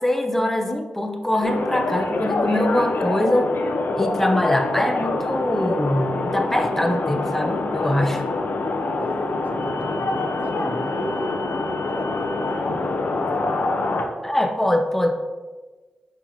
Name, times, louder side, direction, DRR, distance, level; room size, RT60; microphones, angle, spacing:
voice 1, 0.0-3.6 4.0-8.2 14.2-15.2, left 1 dB, 10° left, 5 dB, 0.7 m, -23 dB
sound 1, 1.4-14.0, left 3 dB, 70° left, 0.7 m, -25 dB
sound 2, 2.6-12.6, left 4 dB, 80° right, 1.2 m, -39 dB
voice 2, 9.0-12.9, right 2 dB, 45° right, 5 dB, 0.5 m, -35 dB
6.2 x 5.5 x 3.1 m, 1.3 s
cardioid pair, 80°, 4 cm